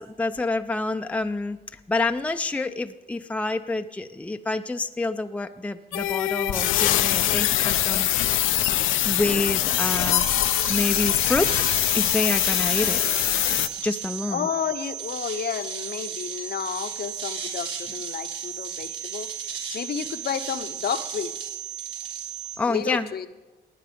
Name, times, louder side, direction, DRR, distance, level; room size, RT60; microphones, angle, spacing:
voice 1, 0.0-1.6 1.9-8.1 9.0-11.5 11.9-13.0 13.8-14.5 22.6-23.1, left 2 dB, 5° left, 8 dB, 0.5 m, -27 dB
sound 1, 5.9-13.7, left 13 dB, 85° left, 0.6 m, -23 dB
sound 2, 9.7-22.6, right 7 dB, 65° right, 3.8 m, -34 dB
voice 2, 14.3-19.3 19.7-21.3 22.7-23.3, left 8 dB, 55° left, 10 dB, 0.8 m, -31 dB
17.0 x 9.4 x 5.2 m, 1.2 s
cardioid pair, 90°, 20 cm